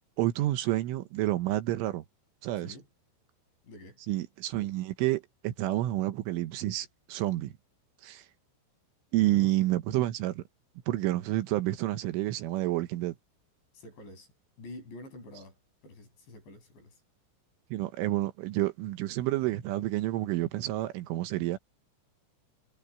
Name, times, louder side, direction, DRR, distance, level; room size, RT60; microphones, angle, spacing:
voice 1, 0.2-2.0 2.4-2.8 4.1-7.5 8.0-8.3 9.1-10.4 10.9-13.2 17.7-21.6, right 16 dB, 75° right, 3.5 m, -29 dB
voice 2, 2.5-2.9 3.6-4.0 9.1-9.5 13.7-14.3 14.6-17.0, left 2 dB, 60° left, 9.4 m, -48 dB
omnidirectional pair, 5.9 m